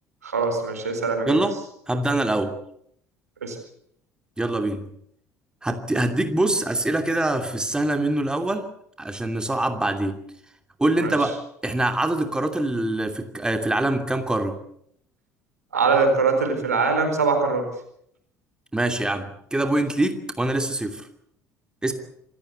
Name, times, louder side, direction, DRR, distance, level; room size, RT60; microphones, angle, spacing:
voice 1, 0.2-1.4 3.4-3.6 11.0-11.1 15.7-17.6, right 4 dB, 80° right, 5 dB, 4.3 m, -22 dB
voice 2, 1.3-1.6 1.9-2.6 4.4-4.9 5.6-8.7 9.0-10.2 10.8-11.3 11.6-14.6 18.7-21.1 21.8-21.9, right 1 dB, 10° right, 6 dB, 2.8 m, -24 dB
26.5 x 15.5 x 8.2 m, 0.71 s
figure-of-eight pair, 60°, 8 cm